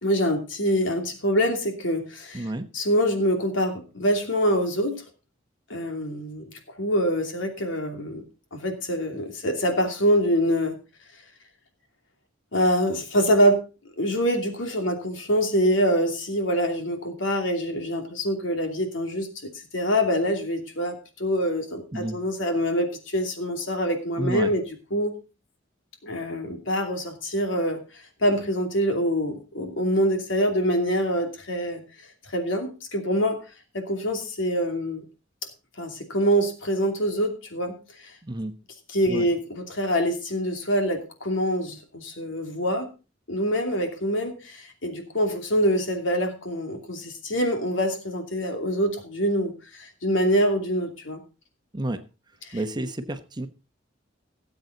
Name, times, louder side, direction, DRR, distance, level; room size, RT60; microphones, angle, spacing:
voice 1, 0.0-2.5 2.7-5.0 5.7-6.5 6.8-8.2 8.5-10.8 12.5-13.6 14.0-24.6 24.9-25.1 26.0-27.8 28.2-31.8 32.3-33.4 33.7-35.0 35.8-37.8 38.9-42.9 43.3-51.2 52.5-52.6, equal, 75° left, 4 dB, 2.8 m, -25 dB
voice 2, 2.3-2.7 21.9-22.2 24.2-24.5 38.2-38.5 39.1-39.3 51.7-52.0 52.5-53.5, right 1 dB, 25° right, 8 dB, 1.0 m, -30 dB
18.0 x 8.0 x 4.0 m, 0.32 s
head